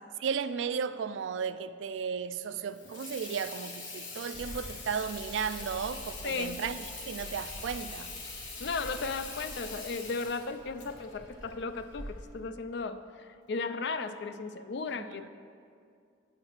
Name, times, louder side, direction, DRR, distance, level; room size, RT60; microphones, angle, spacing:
voice 1, 0.2-8.1 14.9-15.3, right 6 dB, 75° right, 0.3 m, -35 dB
Water tap faucet / Sink (filling or washing), 2.7-12.2, left 3 dB, 80° left, 1.4 m, -44 dB
Bark, 4.3-12.3, equal, 40° left, 2.2 m, -48 dB
voice 2, 6.2-6.6 8.6-15.3, left 4 dB, 60° left, 0.4 m, -35 dB
9.5 x 4.4 x 6.5 m
head